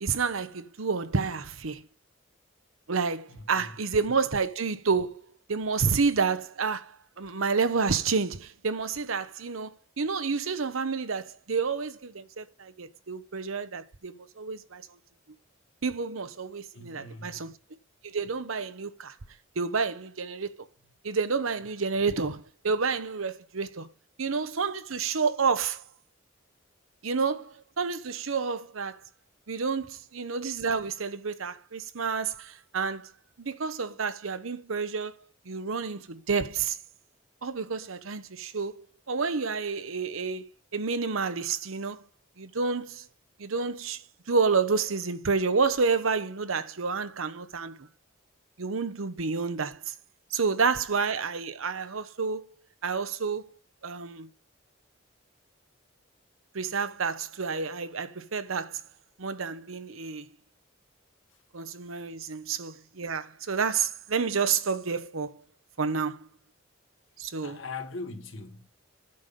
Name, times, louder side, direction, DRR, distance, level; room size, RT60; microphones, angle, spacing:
voice 1, 0.0-1.9 2.9-5.2 5.5-14.9 15.8-17.5 18.0-19.2 19.6-20.7 21.0-23.9 24.2-25.8 27.0-29.0 29.5-33.1 33.4-35.2 35.4-36.8 37.4-40.5 40.7-42.0 42.4-43.1 43.4-47.8 48.6-49.9 50.3-52.5 52.8-53.5 53.8-54.3 56.5-58.8 59.2-60.3 61.5-65.4 65.8-66.3 67.2-67.6, right 5 dB, 80° right, 0.9 m, -29 dB
voice 2, 3.3-3.7 16.7-17.5 61.3-61.4 62.2-62.4 67.4-68.7, left 3 dB, 70° left, 1.9 m, -41 dB
9.6 x 6.8 x 5.3 m
head